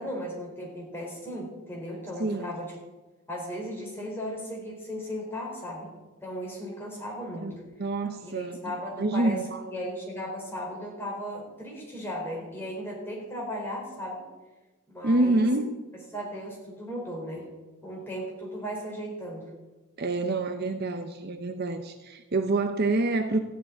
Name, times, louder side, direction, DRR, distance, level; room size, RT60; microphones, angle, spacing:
voice 1, 0.0-2.7 3.3-5.9 6.2-7.5 8.2-9.4 9.7-14.2 14.9-15.4 16.1-17.5 17.8-19.5, equal, 10° left, -3 dB, 4.5 m, -36 dB
voice 2, 2.2-2.5 7.3-7.5 7.8-9.7 15.0-15.7 20.0-23.4, right 2 dB, 45° right, 8 dB, 0.7 m, -27 dB
14.5 x 6.9 x 9.9 m, 1.2 s
head